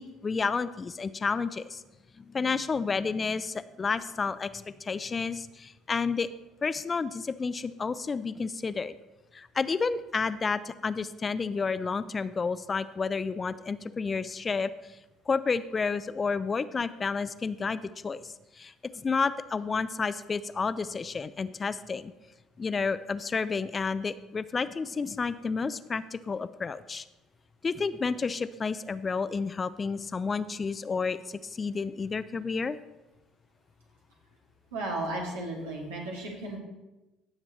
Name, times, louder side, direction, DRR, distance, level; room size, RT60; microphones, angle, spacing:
voice 1, 0.0-1.8 2.2-6.3 6.6-9.0 9.3-15.0 15.3-22.1 22.6-27.0 27.6-32.8, left 4 dB, 30° left, 14 dB, 0.5 m, -31 dB
voice 2, 34.7-36.6, right 2 dB, 85° right, -3 dB, 2.5 m, -34 dB
16.5 x 7.3 x 3.2 m, 1.0 s
hypercardioid pair, 60°, 0 cm